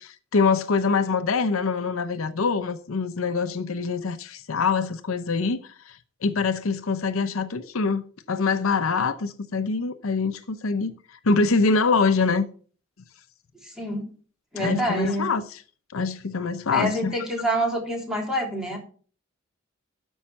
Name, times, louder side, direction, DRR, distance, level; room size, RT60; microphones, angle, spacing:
voice 1, 0.0-12.5 14.6-15.6 15.9-17.2, left 4 dB, 70° left, 0.7 m, -24 dB
voice 2, 13.6-14.1 14.5-15.3 16.7-18.8, equal, 5° right, 3.3 m, -26 dB
13.0 x 5.5 x 5.8 m
head